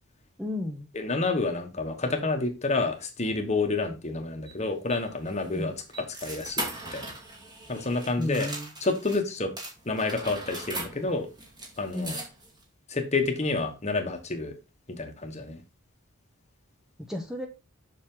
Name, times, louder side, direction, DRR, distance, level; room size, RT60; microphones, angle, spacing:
voice 1, 0.4-0.9 5.5-5.7 8.2-8.7 11.9-12.2 17.1-17.5, left 1 dB, ahead, 3 dB, 0.9 m, -32 dB
voice 2, 0.9-7.1 7.7-8.5 8.8-9.5 9.8-11.3 11.8-12.2 12.9-14.5 14.9-15.6, left 3 dB, 30° left, 5 dB, 1.3 m, -29 dB
sound 1, 4.5-9.2 9.6-12.6, right 2 dB, 20° right, 2.1 m, -39 dB
7.2 x 6.2 x 3.8 m, 0.27 s
head